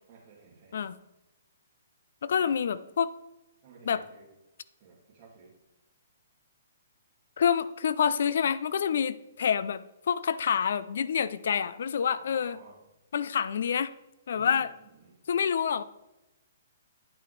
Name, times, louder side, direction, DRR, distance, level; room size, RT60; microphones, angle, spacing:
voice 1, 0.1-1.0 2.4-2.6 3.6-4.3 4.8-5.5 12.1-12.8 14.3-15.2, right 5 dB, 35° right, -8 dB, 2.1 m, -54 dB
voice 2, 2.2-3.1 3.9-4.0 7.4-9.8 10.1-12.6 13.1-13.9 14.3-14.7 15.3-15.8, left 7 dB, 65° left, 16 dB, 0.4 m, -27 dB
10.5 x 5.8 x 3.2 m, 0.97 s
hypercardioid pair, 155°, 0 cm